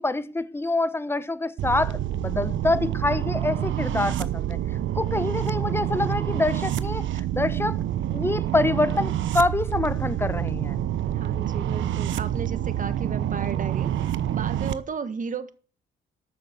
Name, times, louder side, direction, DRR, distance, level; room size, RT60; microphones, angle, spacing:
voice 1, 0.0-4.6 5.0-7.8 8.1-10.8, left 2 dB, 10° left, 1.0 m, -26 dB
sound 1, 1.6-14.7, right 11 dB, 75° right, 0.9 m, -27 dB
voice 2, 11.1-15.5, right 5 dB, 40° right, 1.5 m, -34 dB
13.0 x 6.7 x 8.4 m
cardioid pair, 90°, 20 cm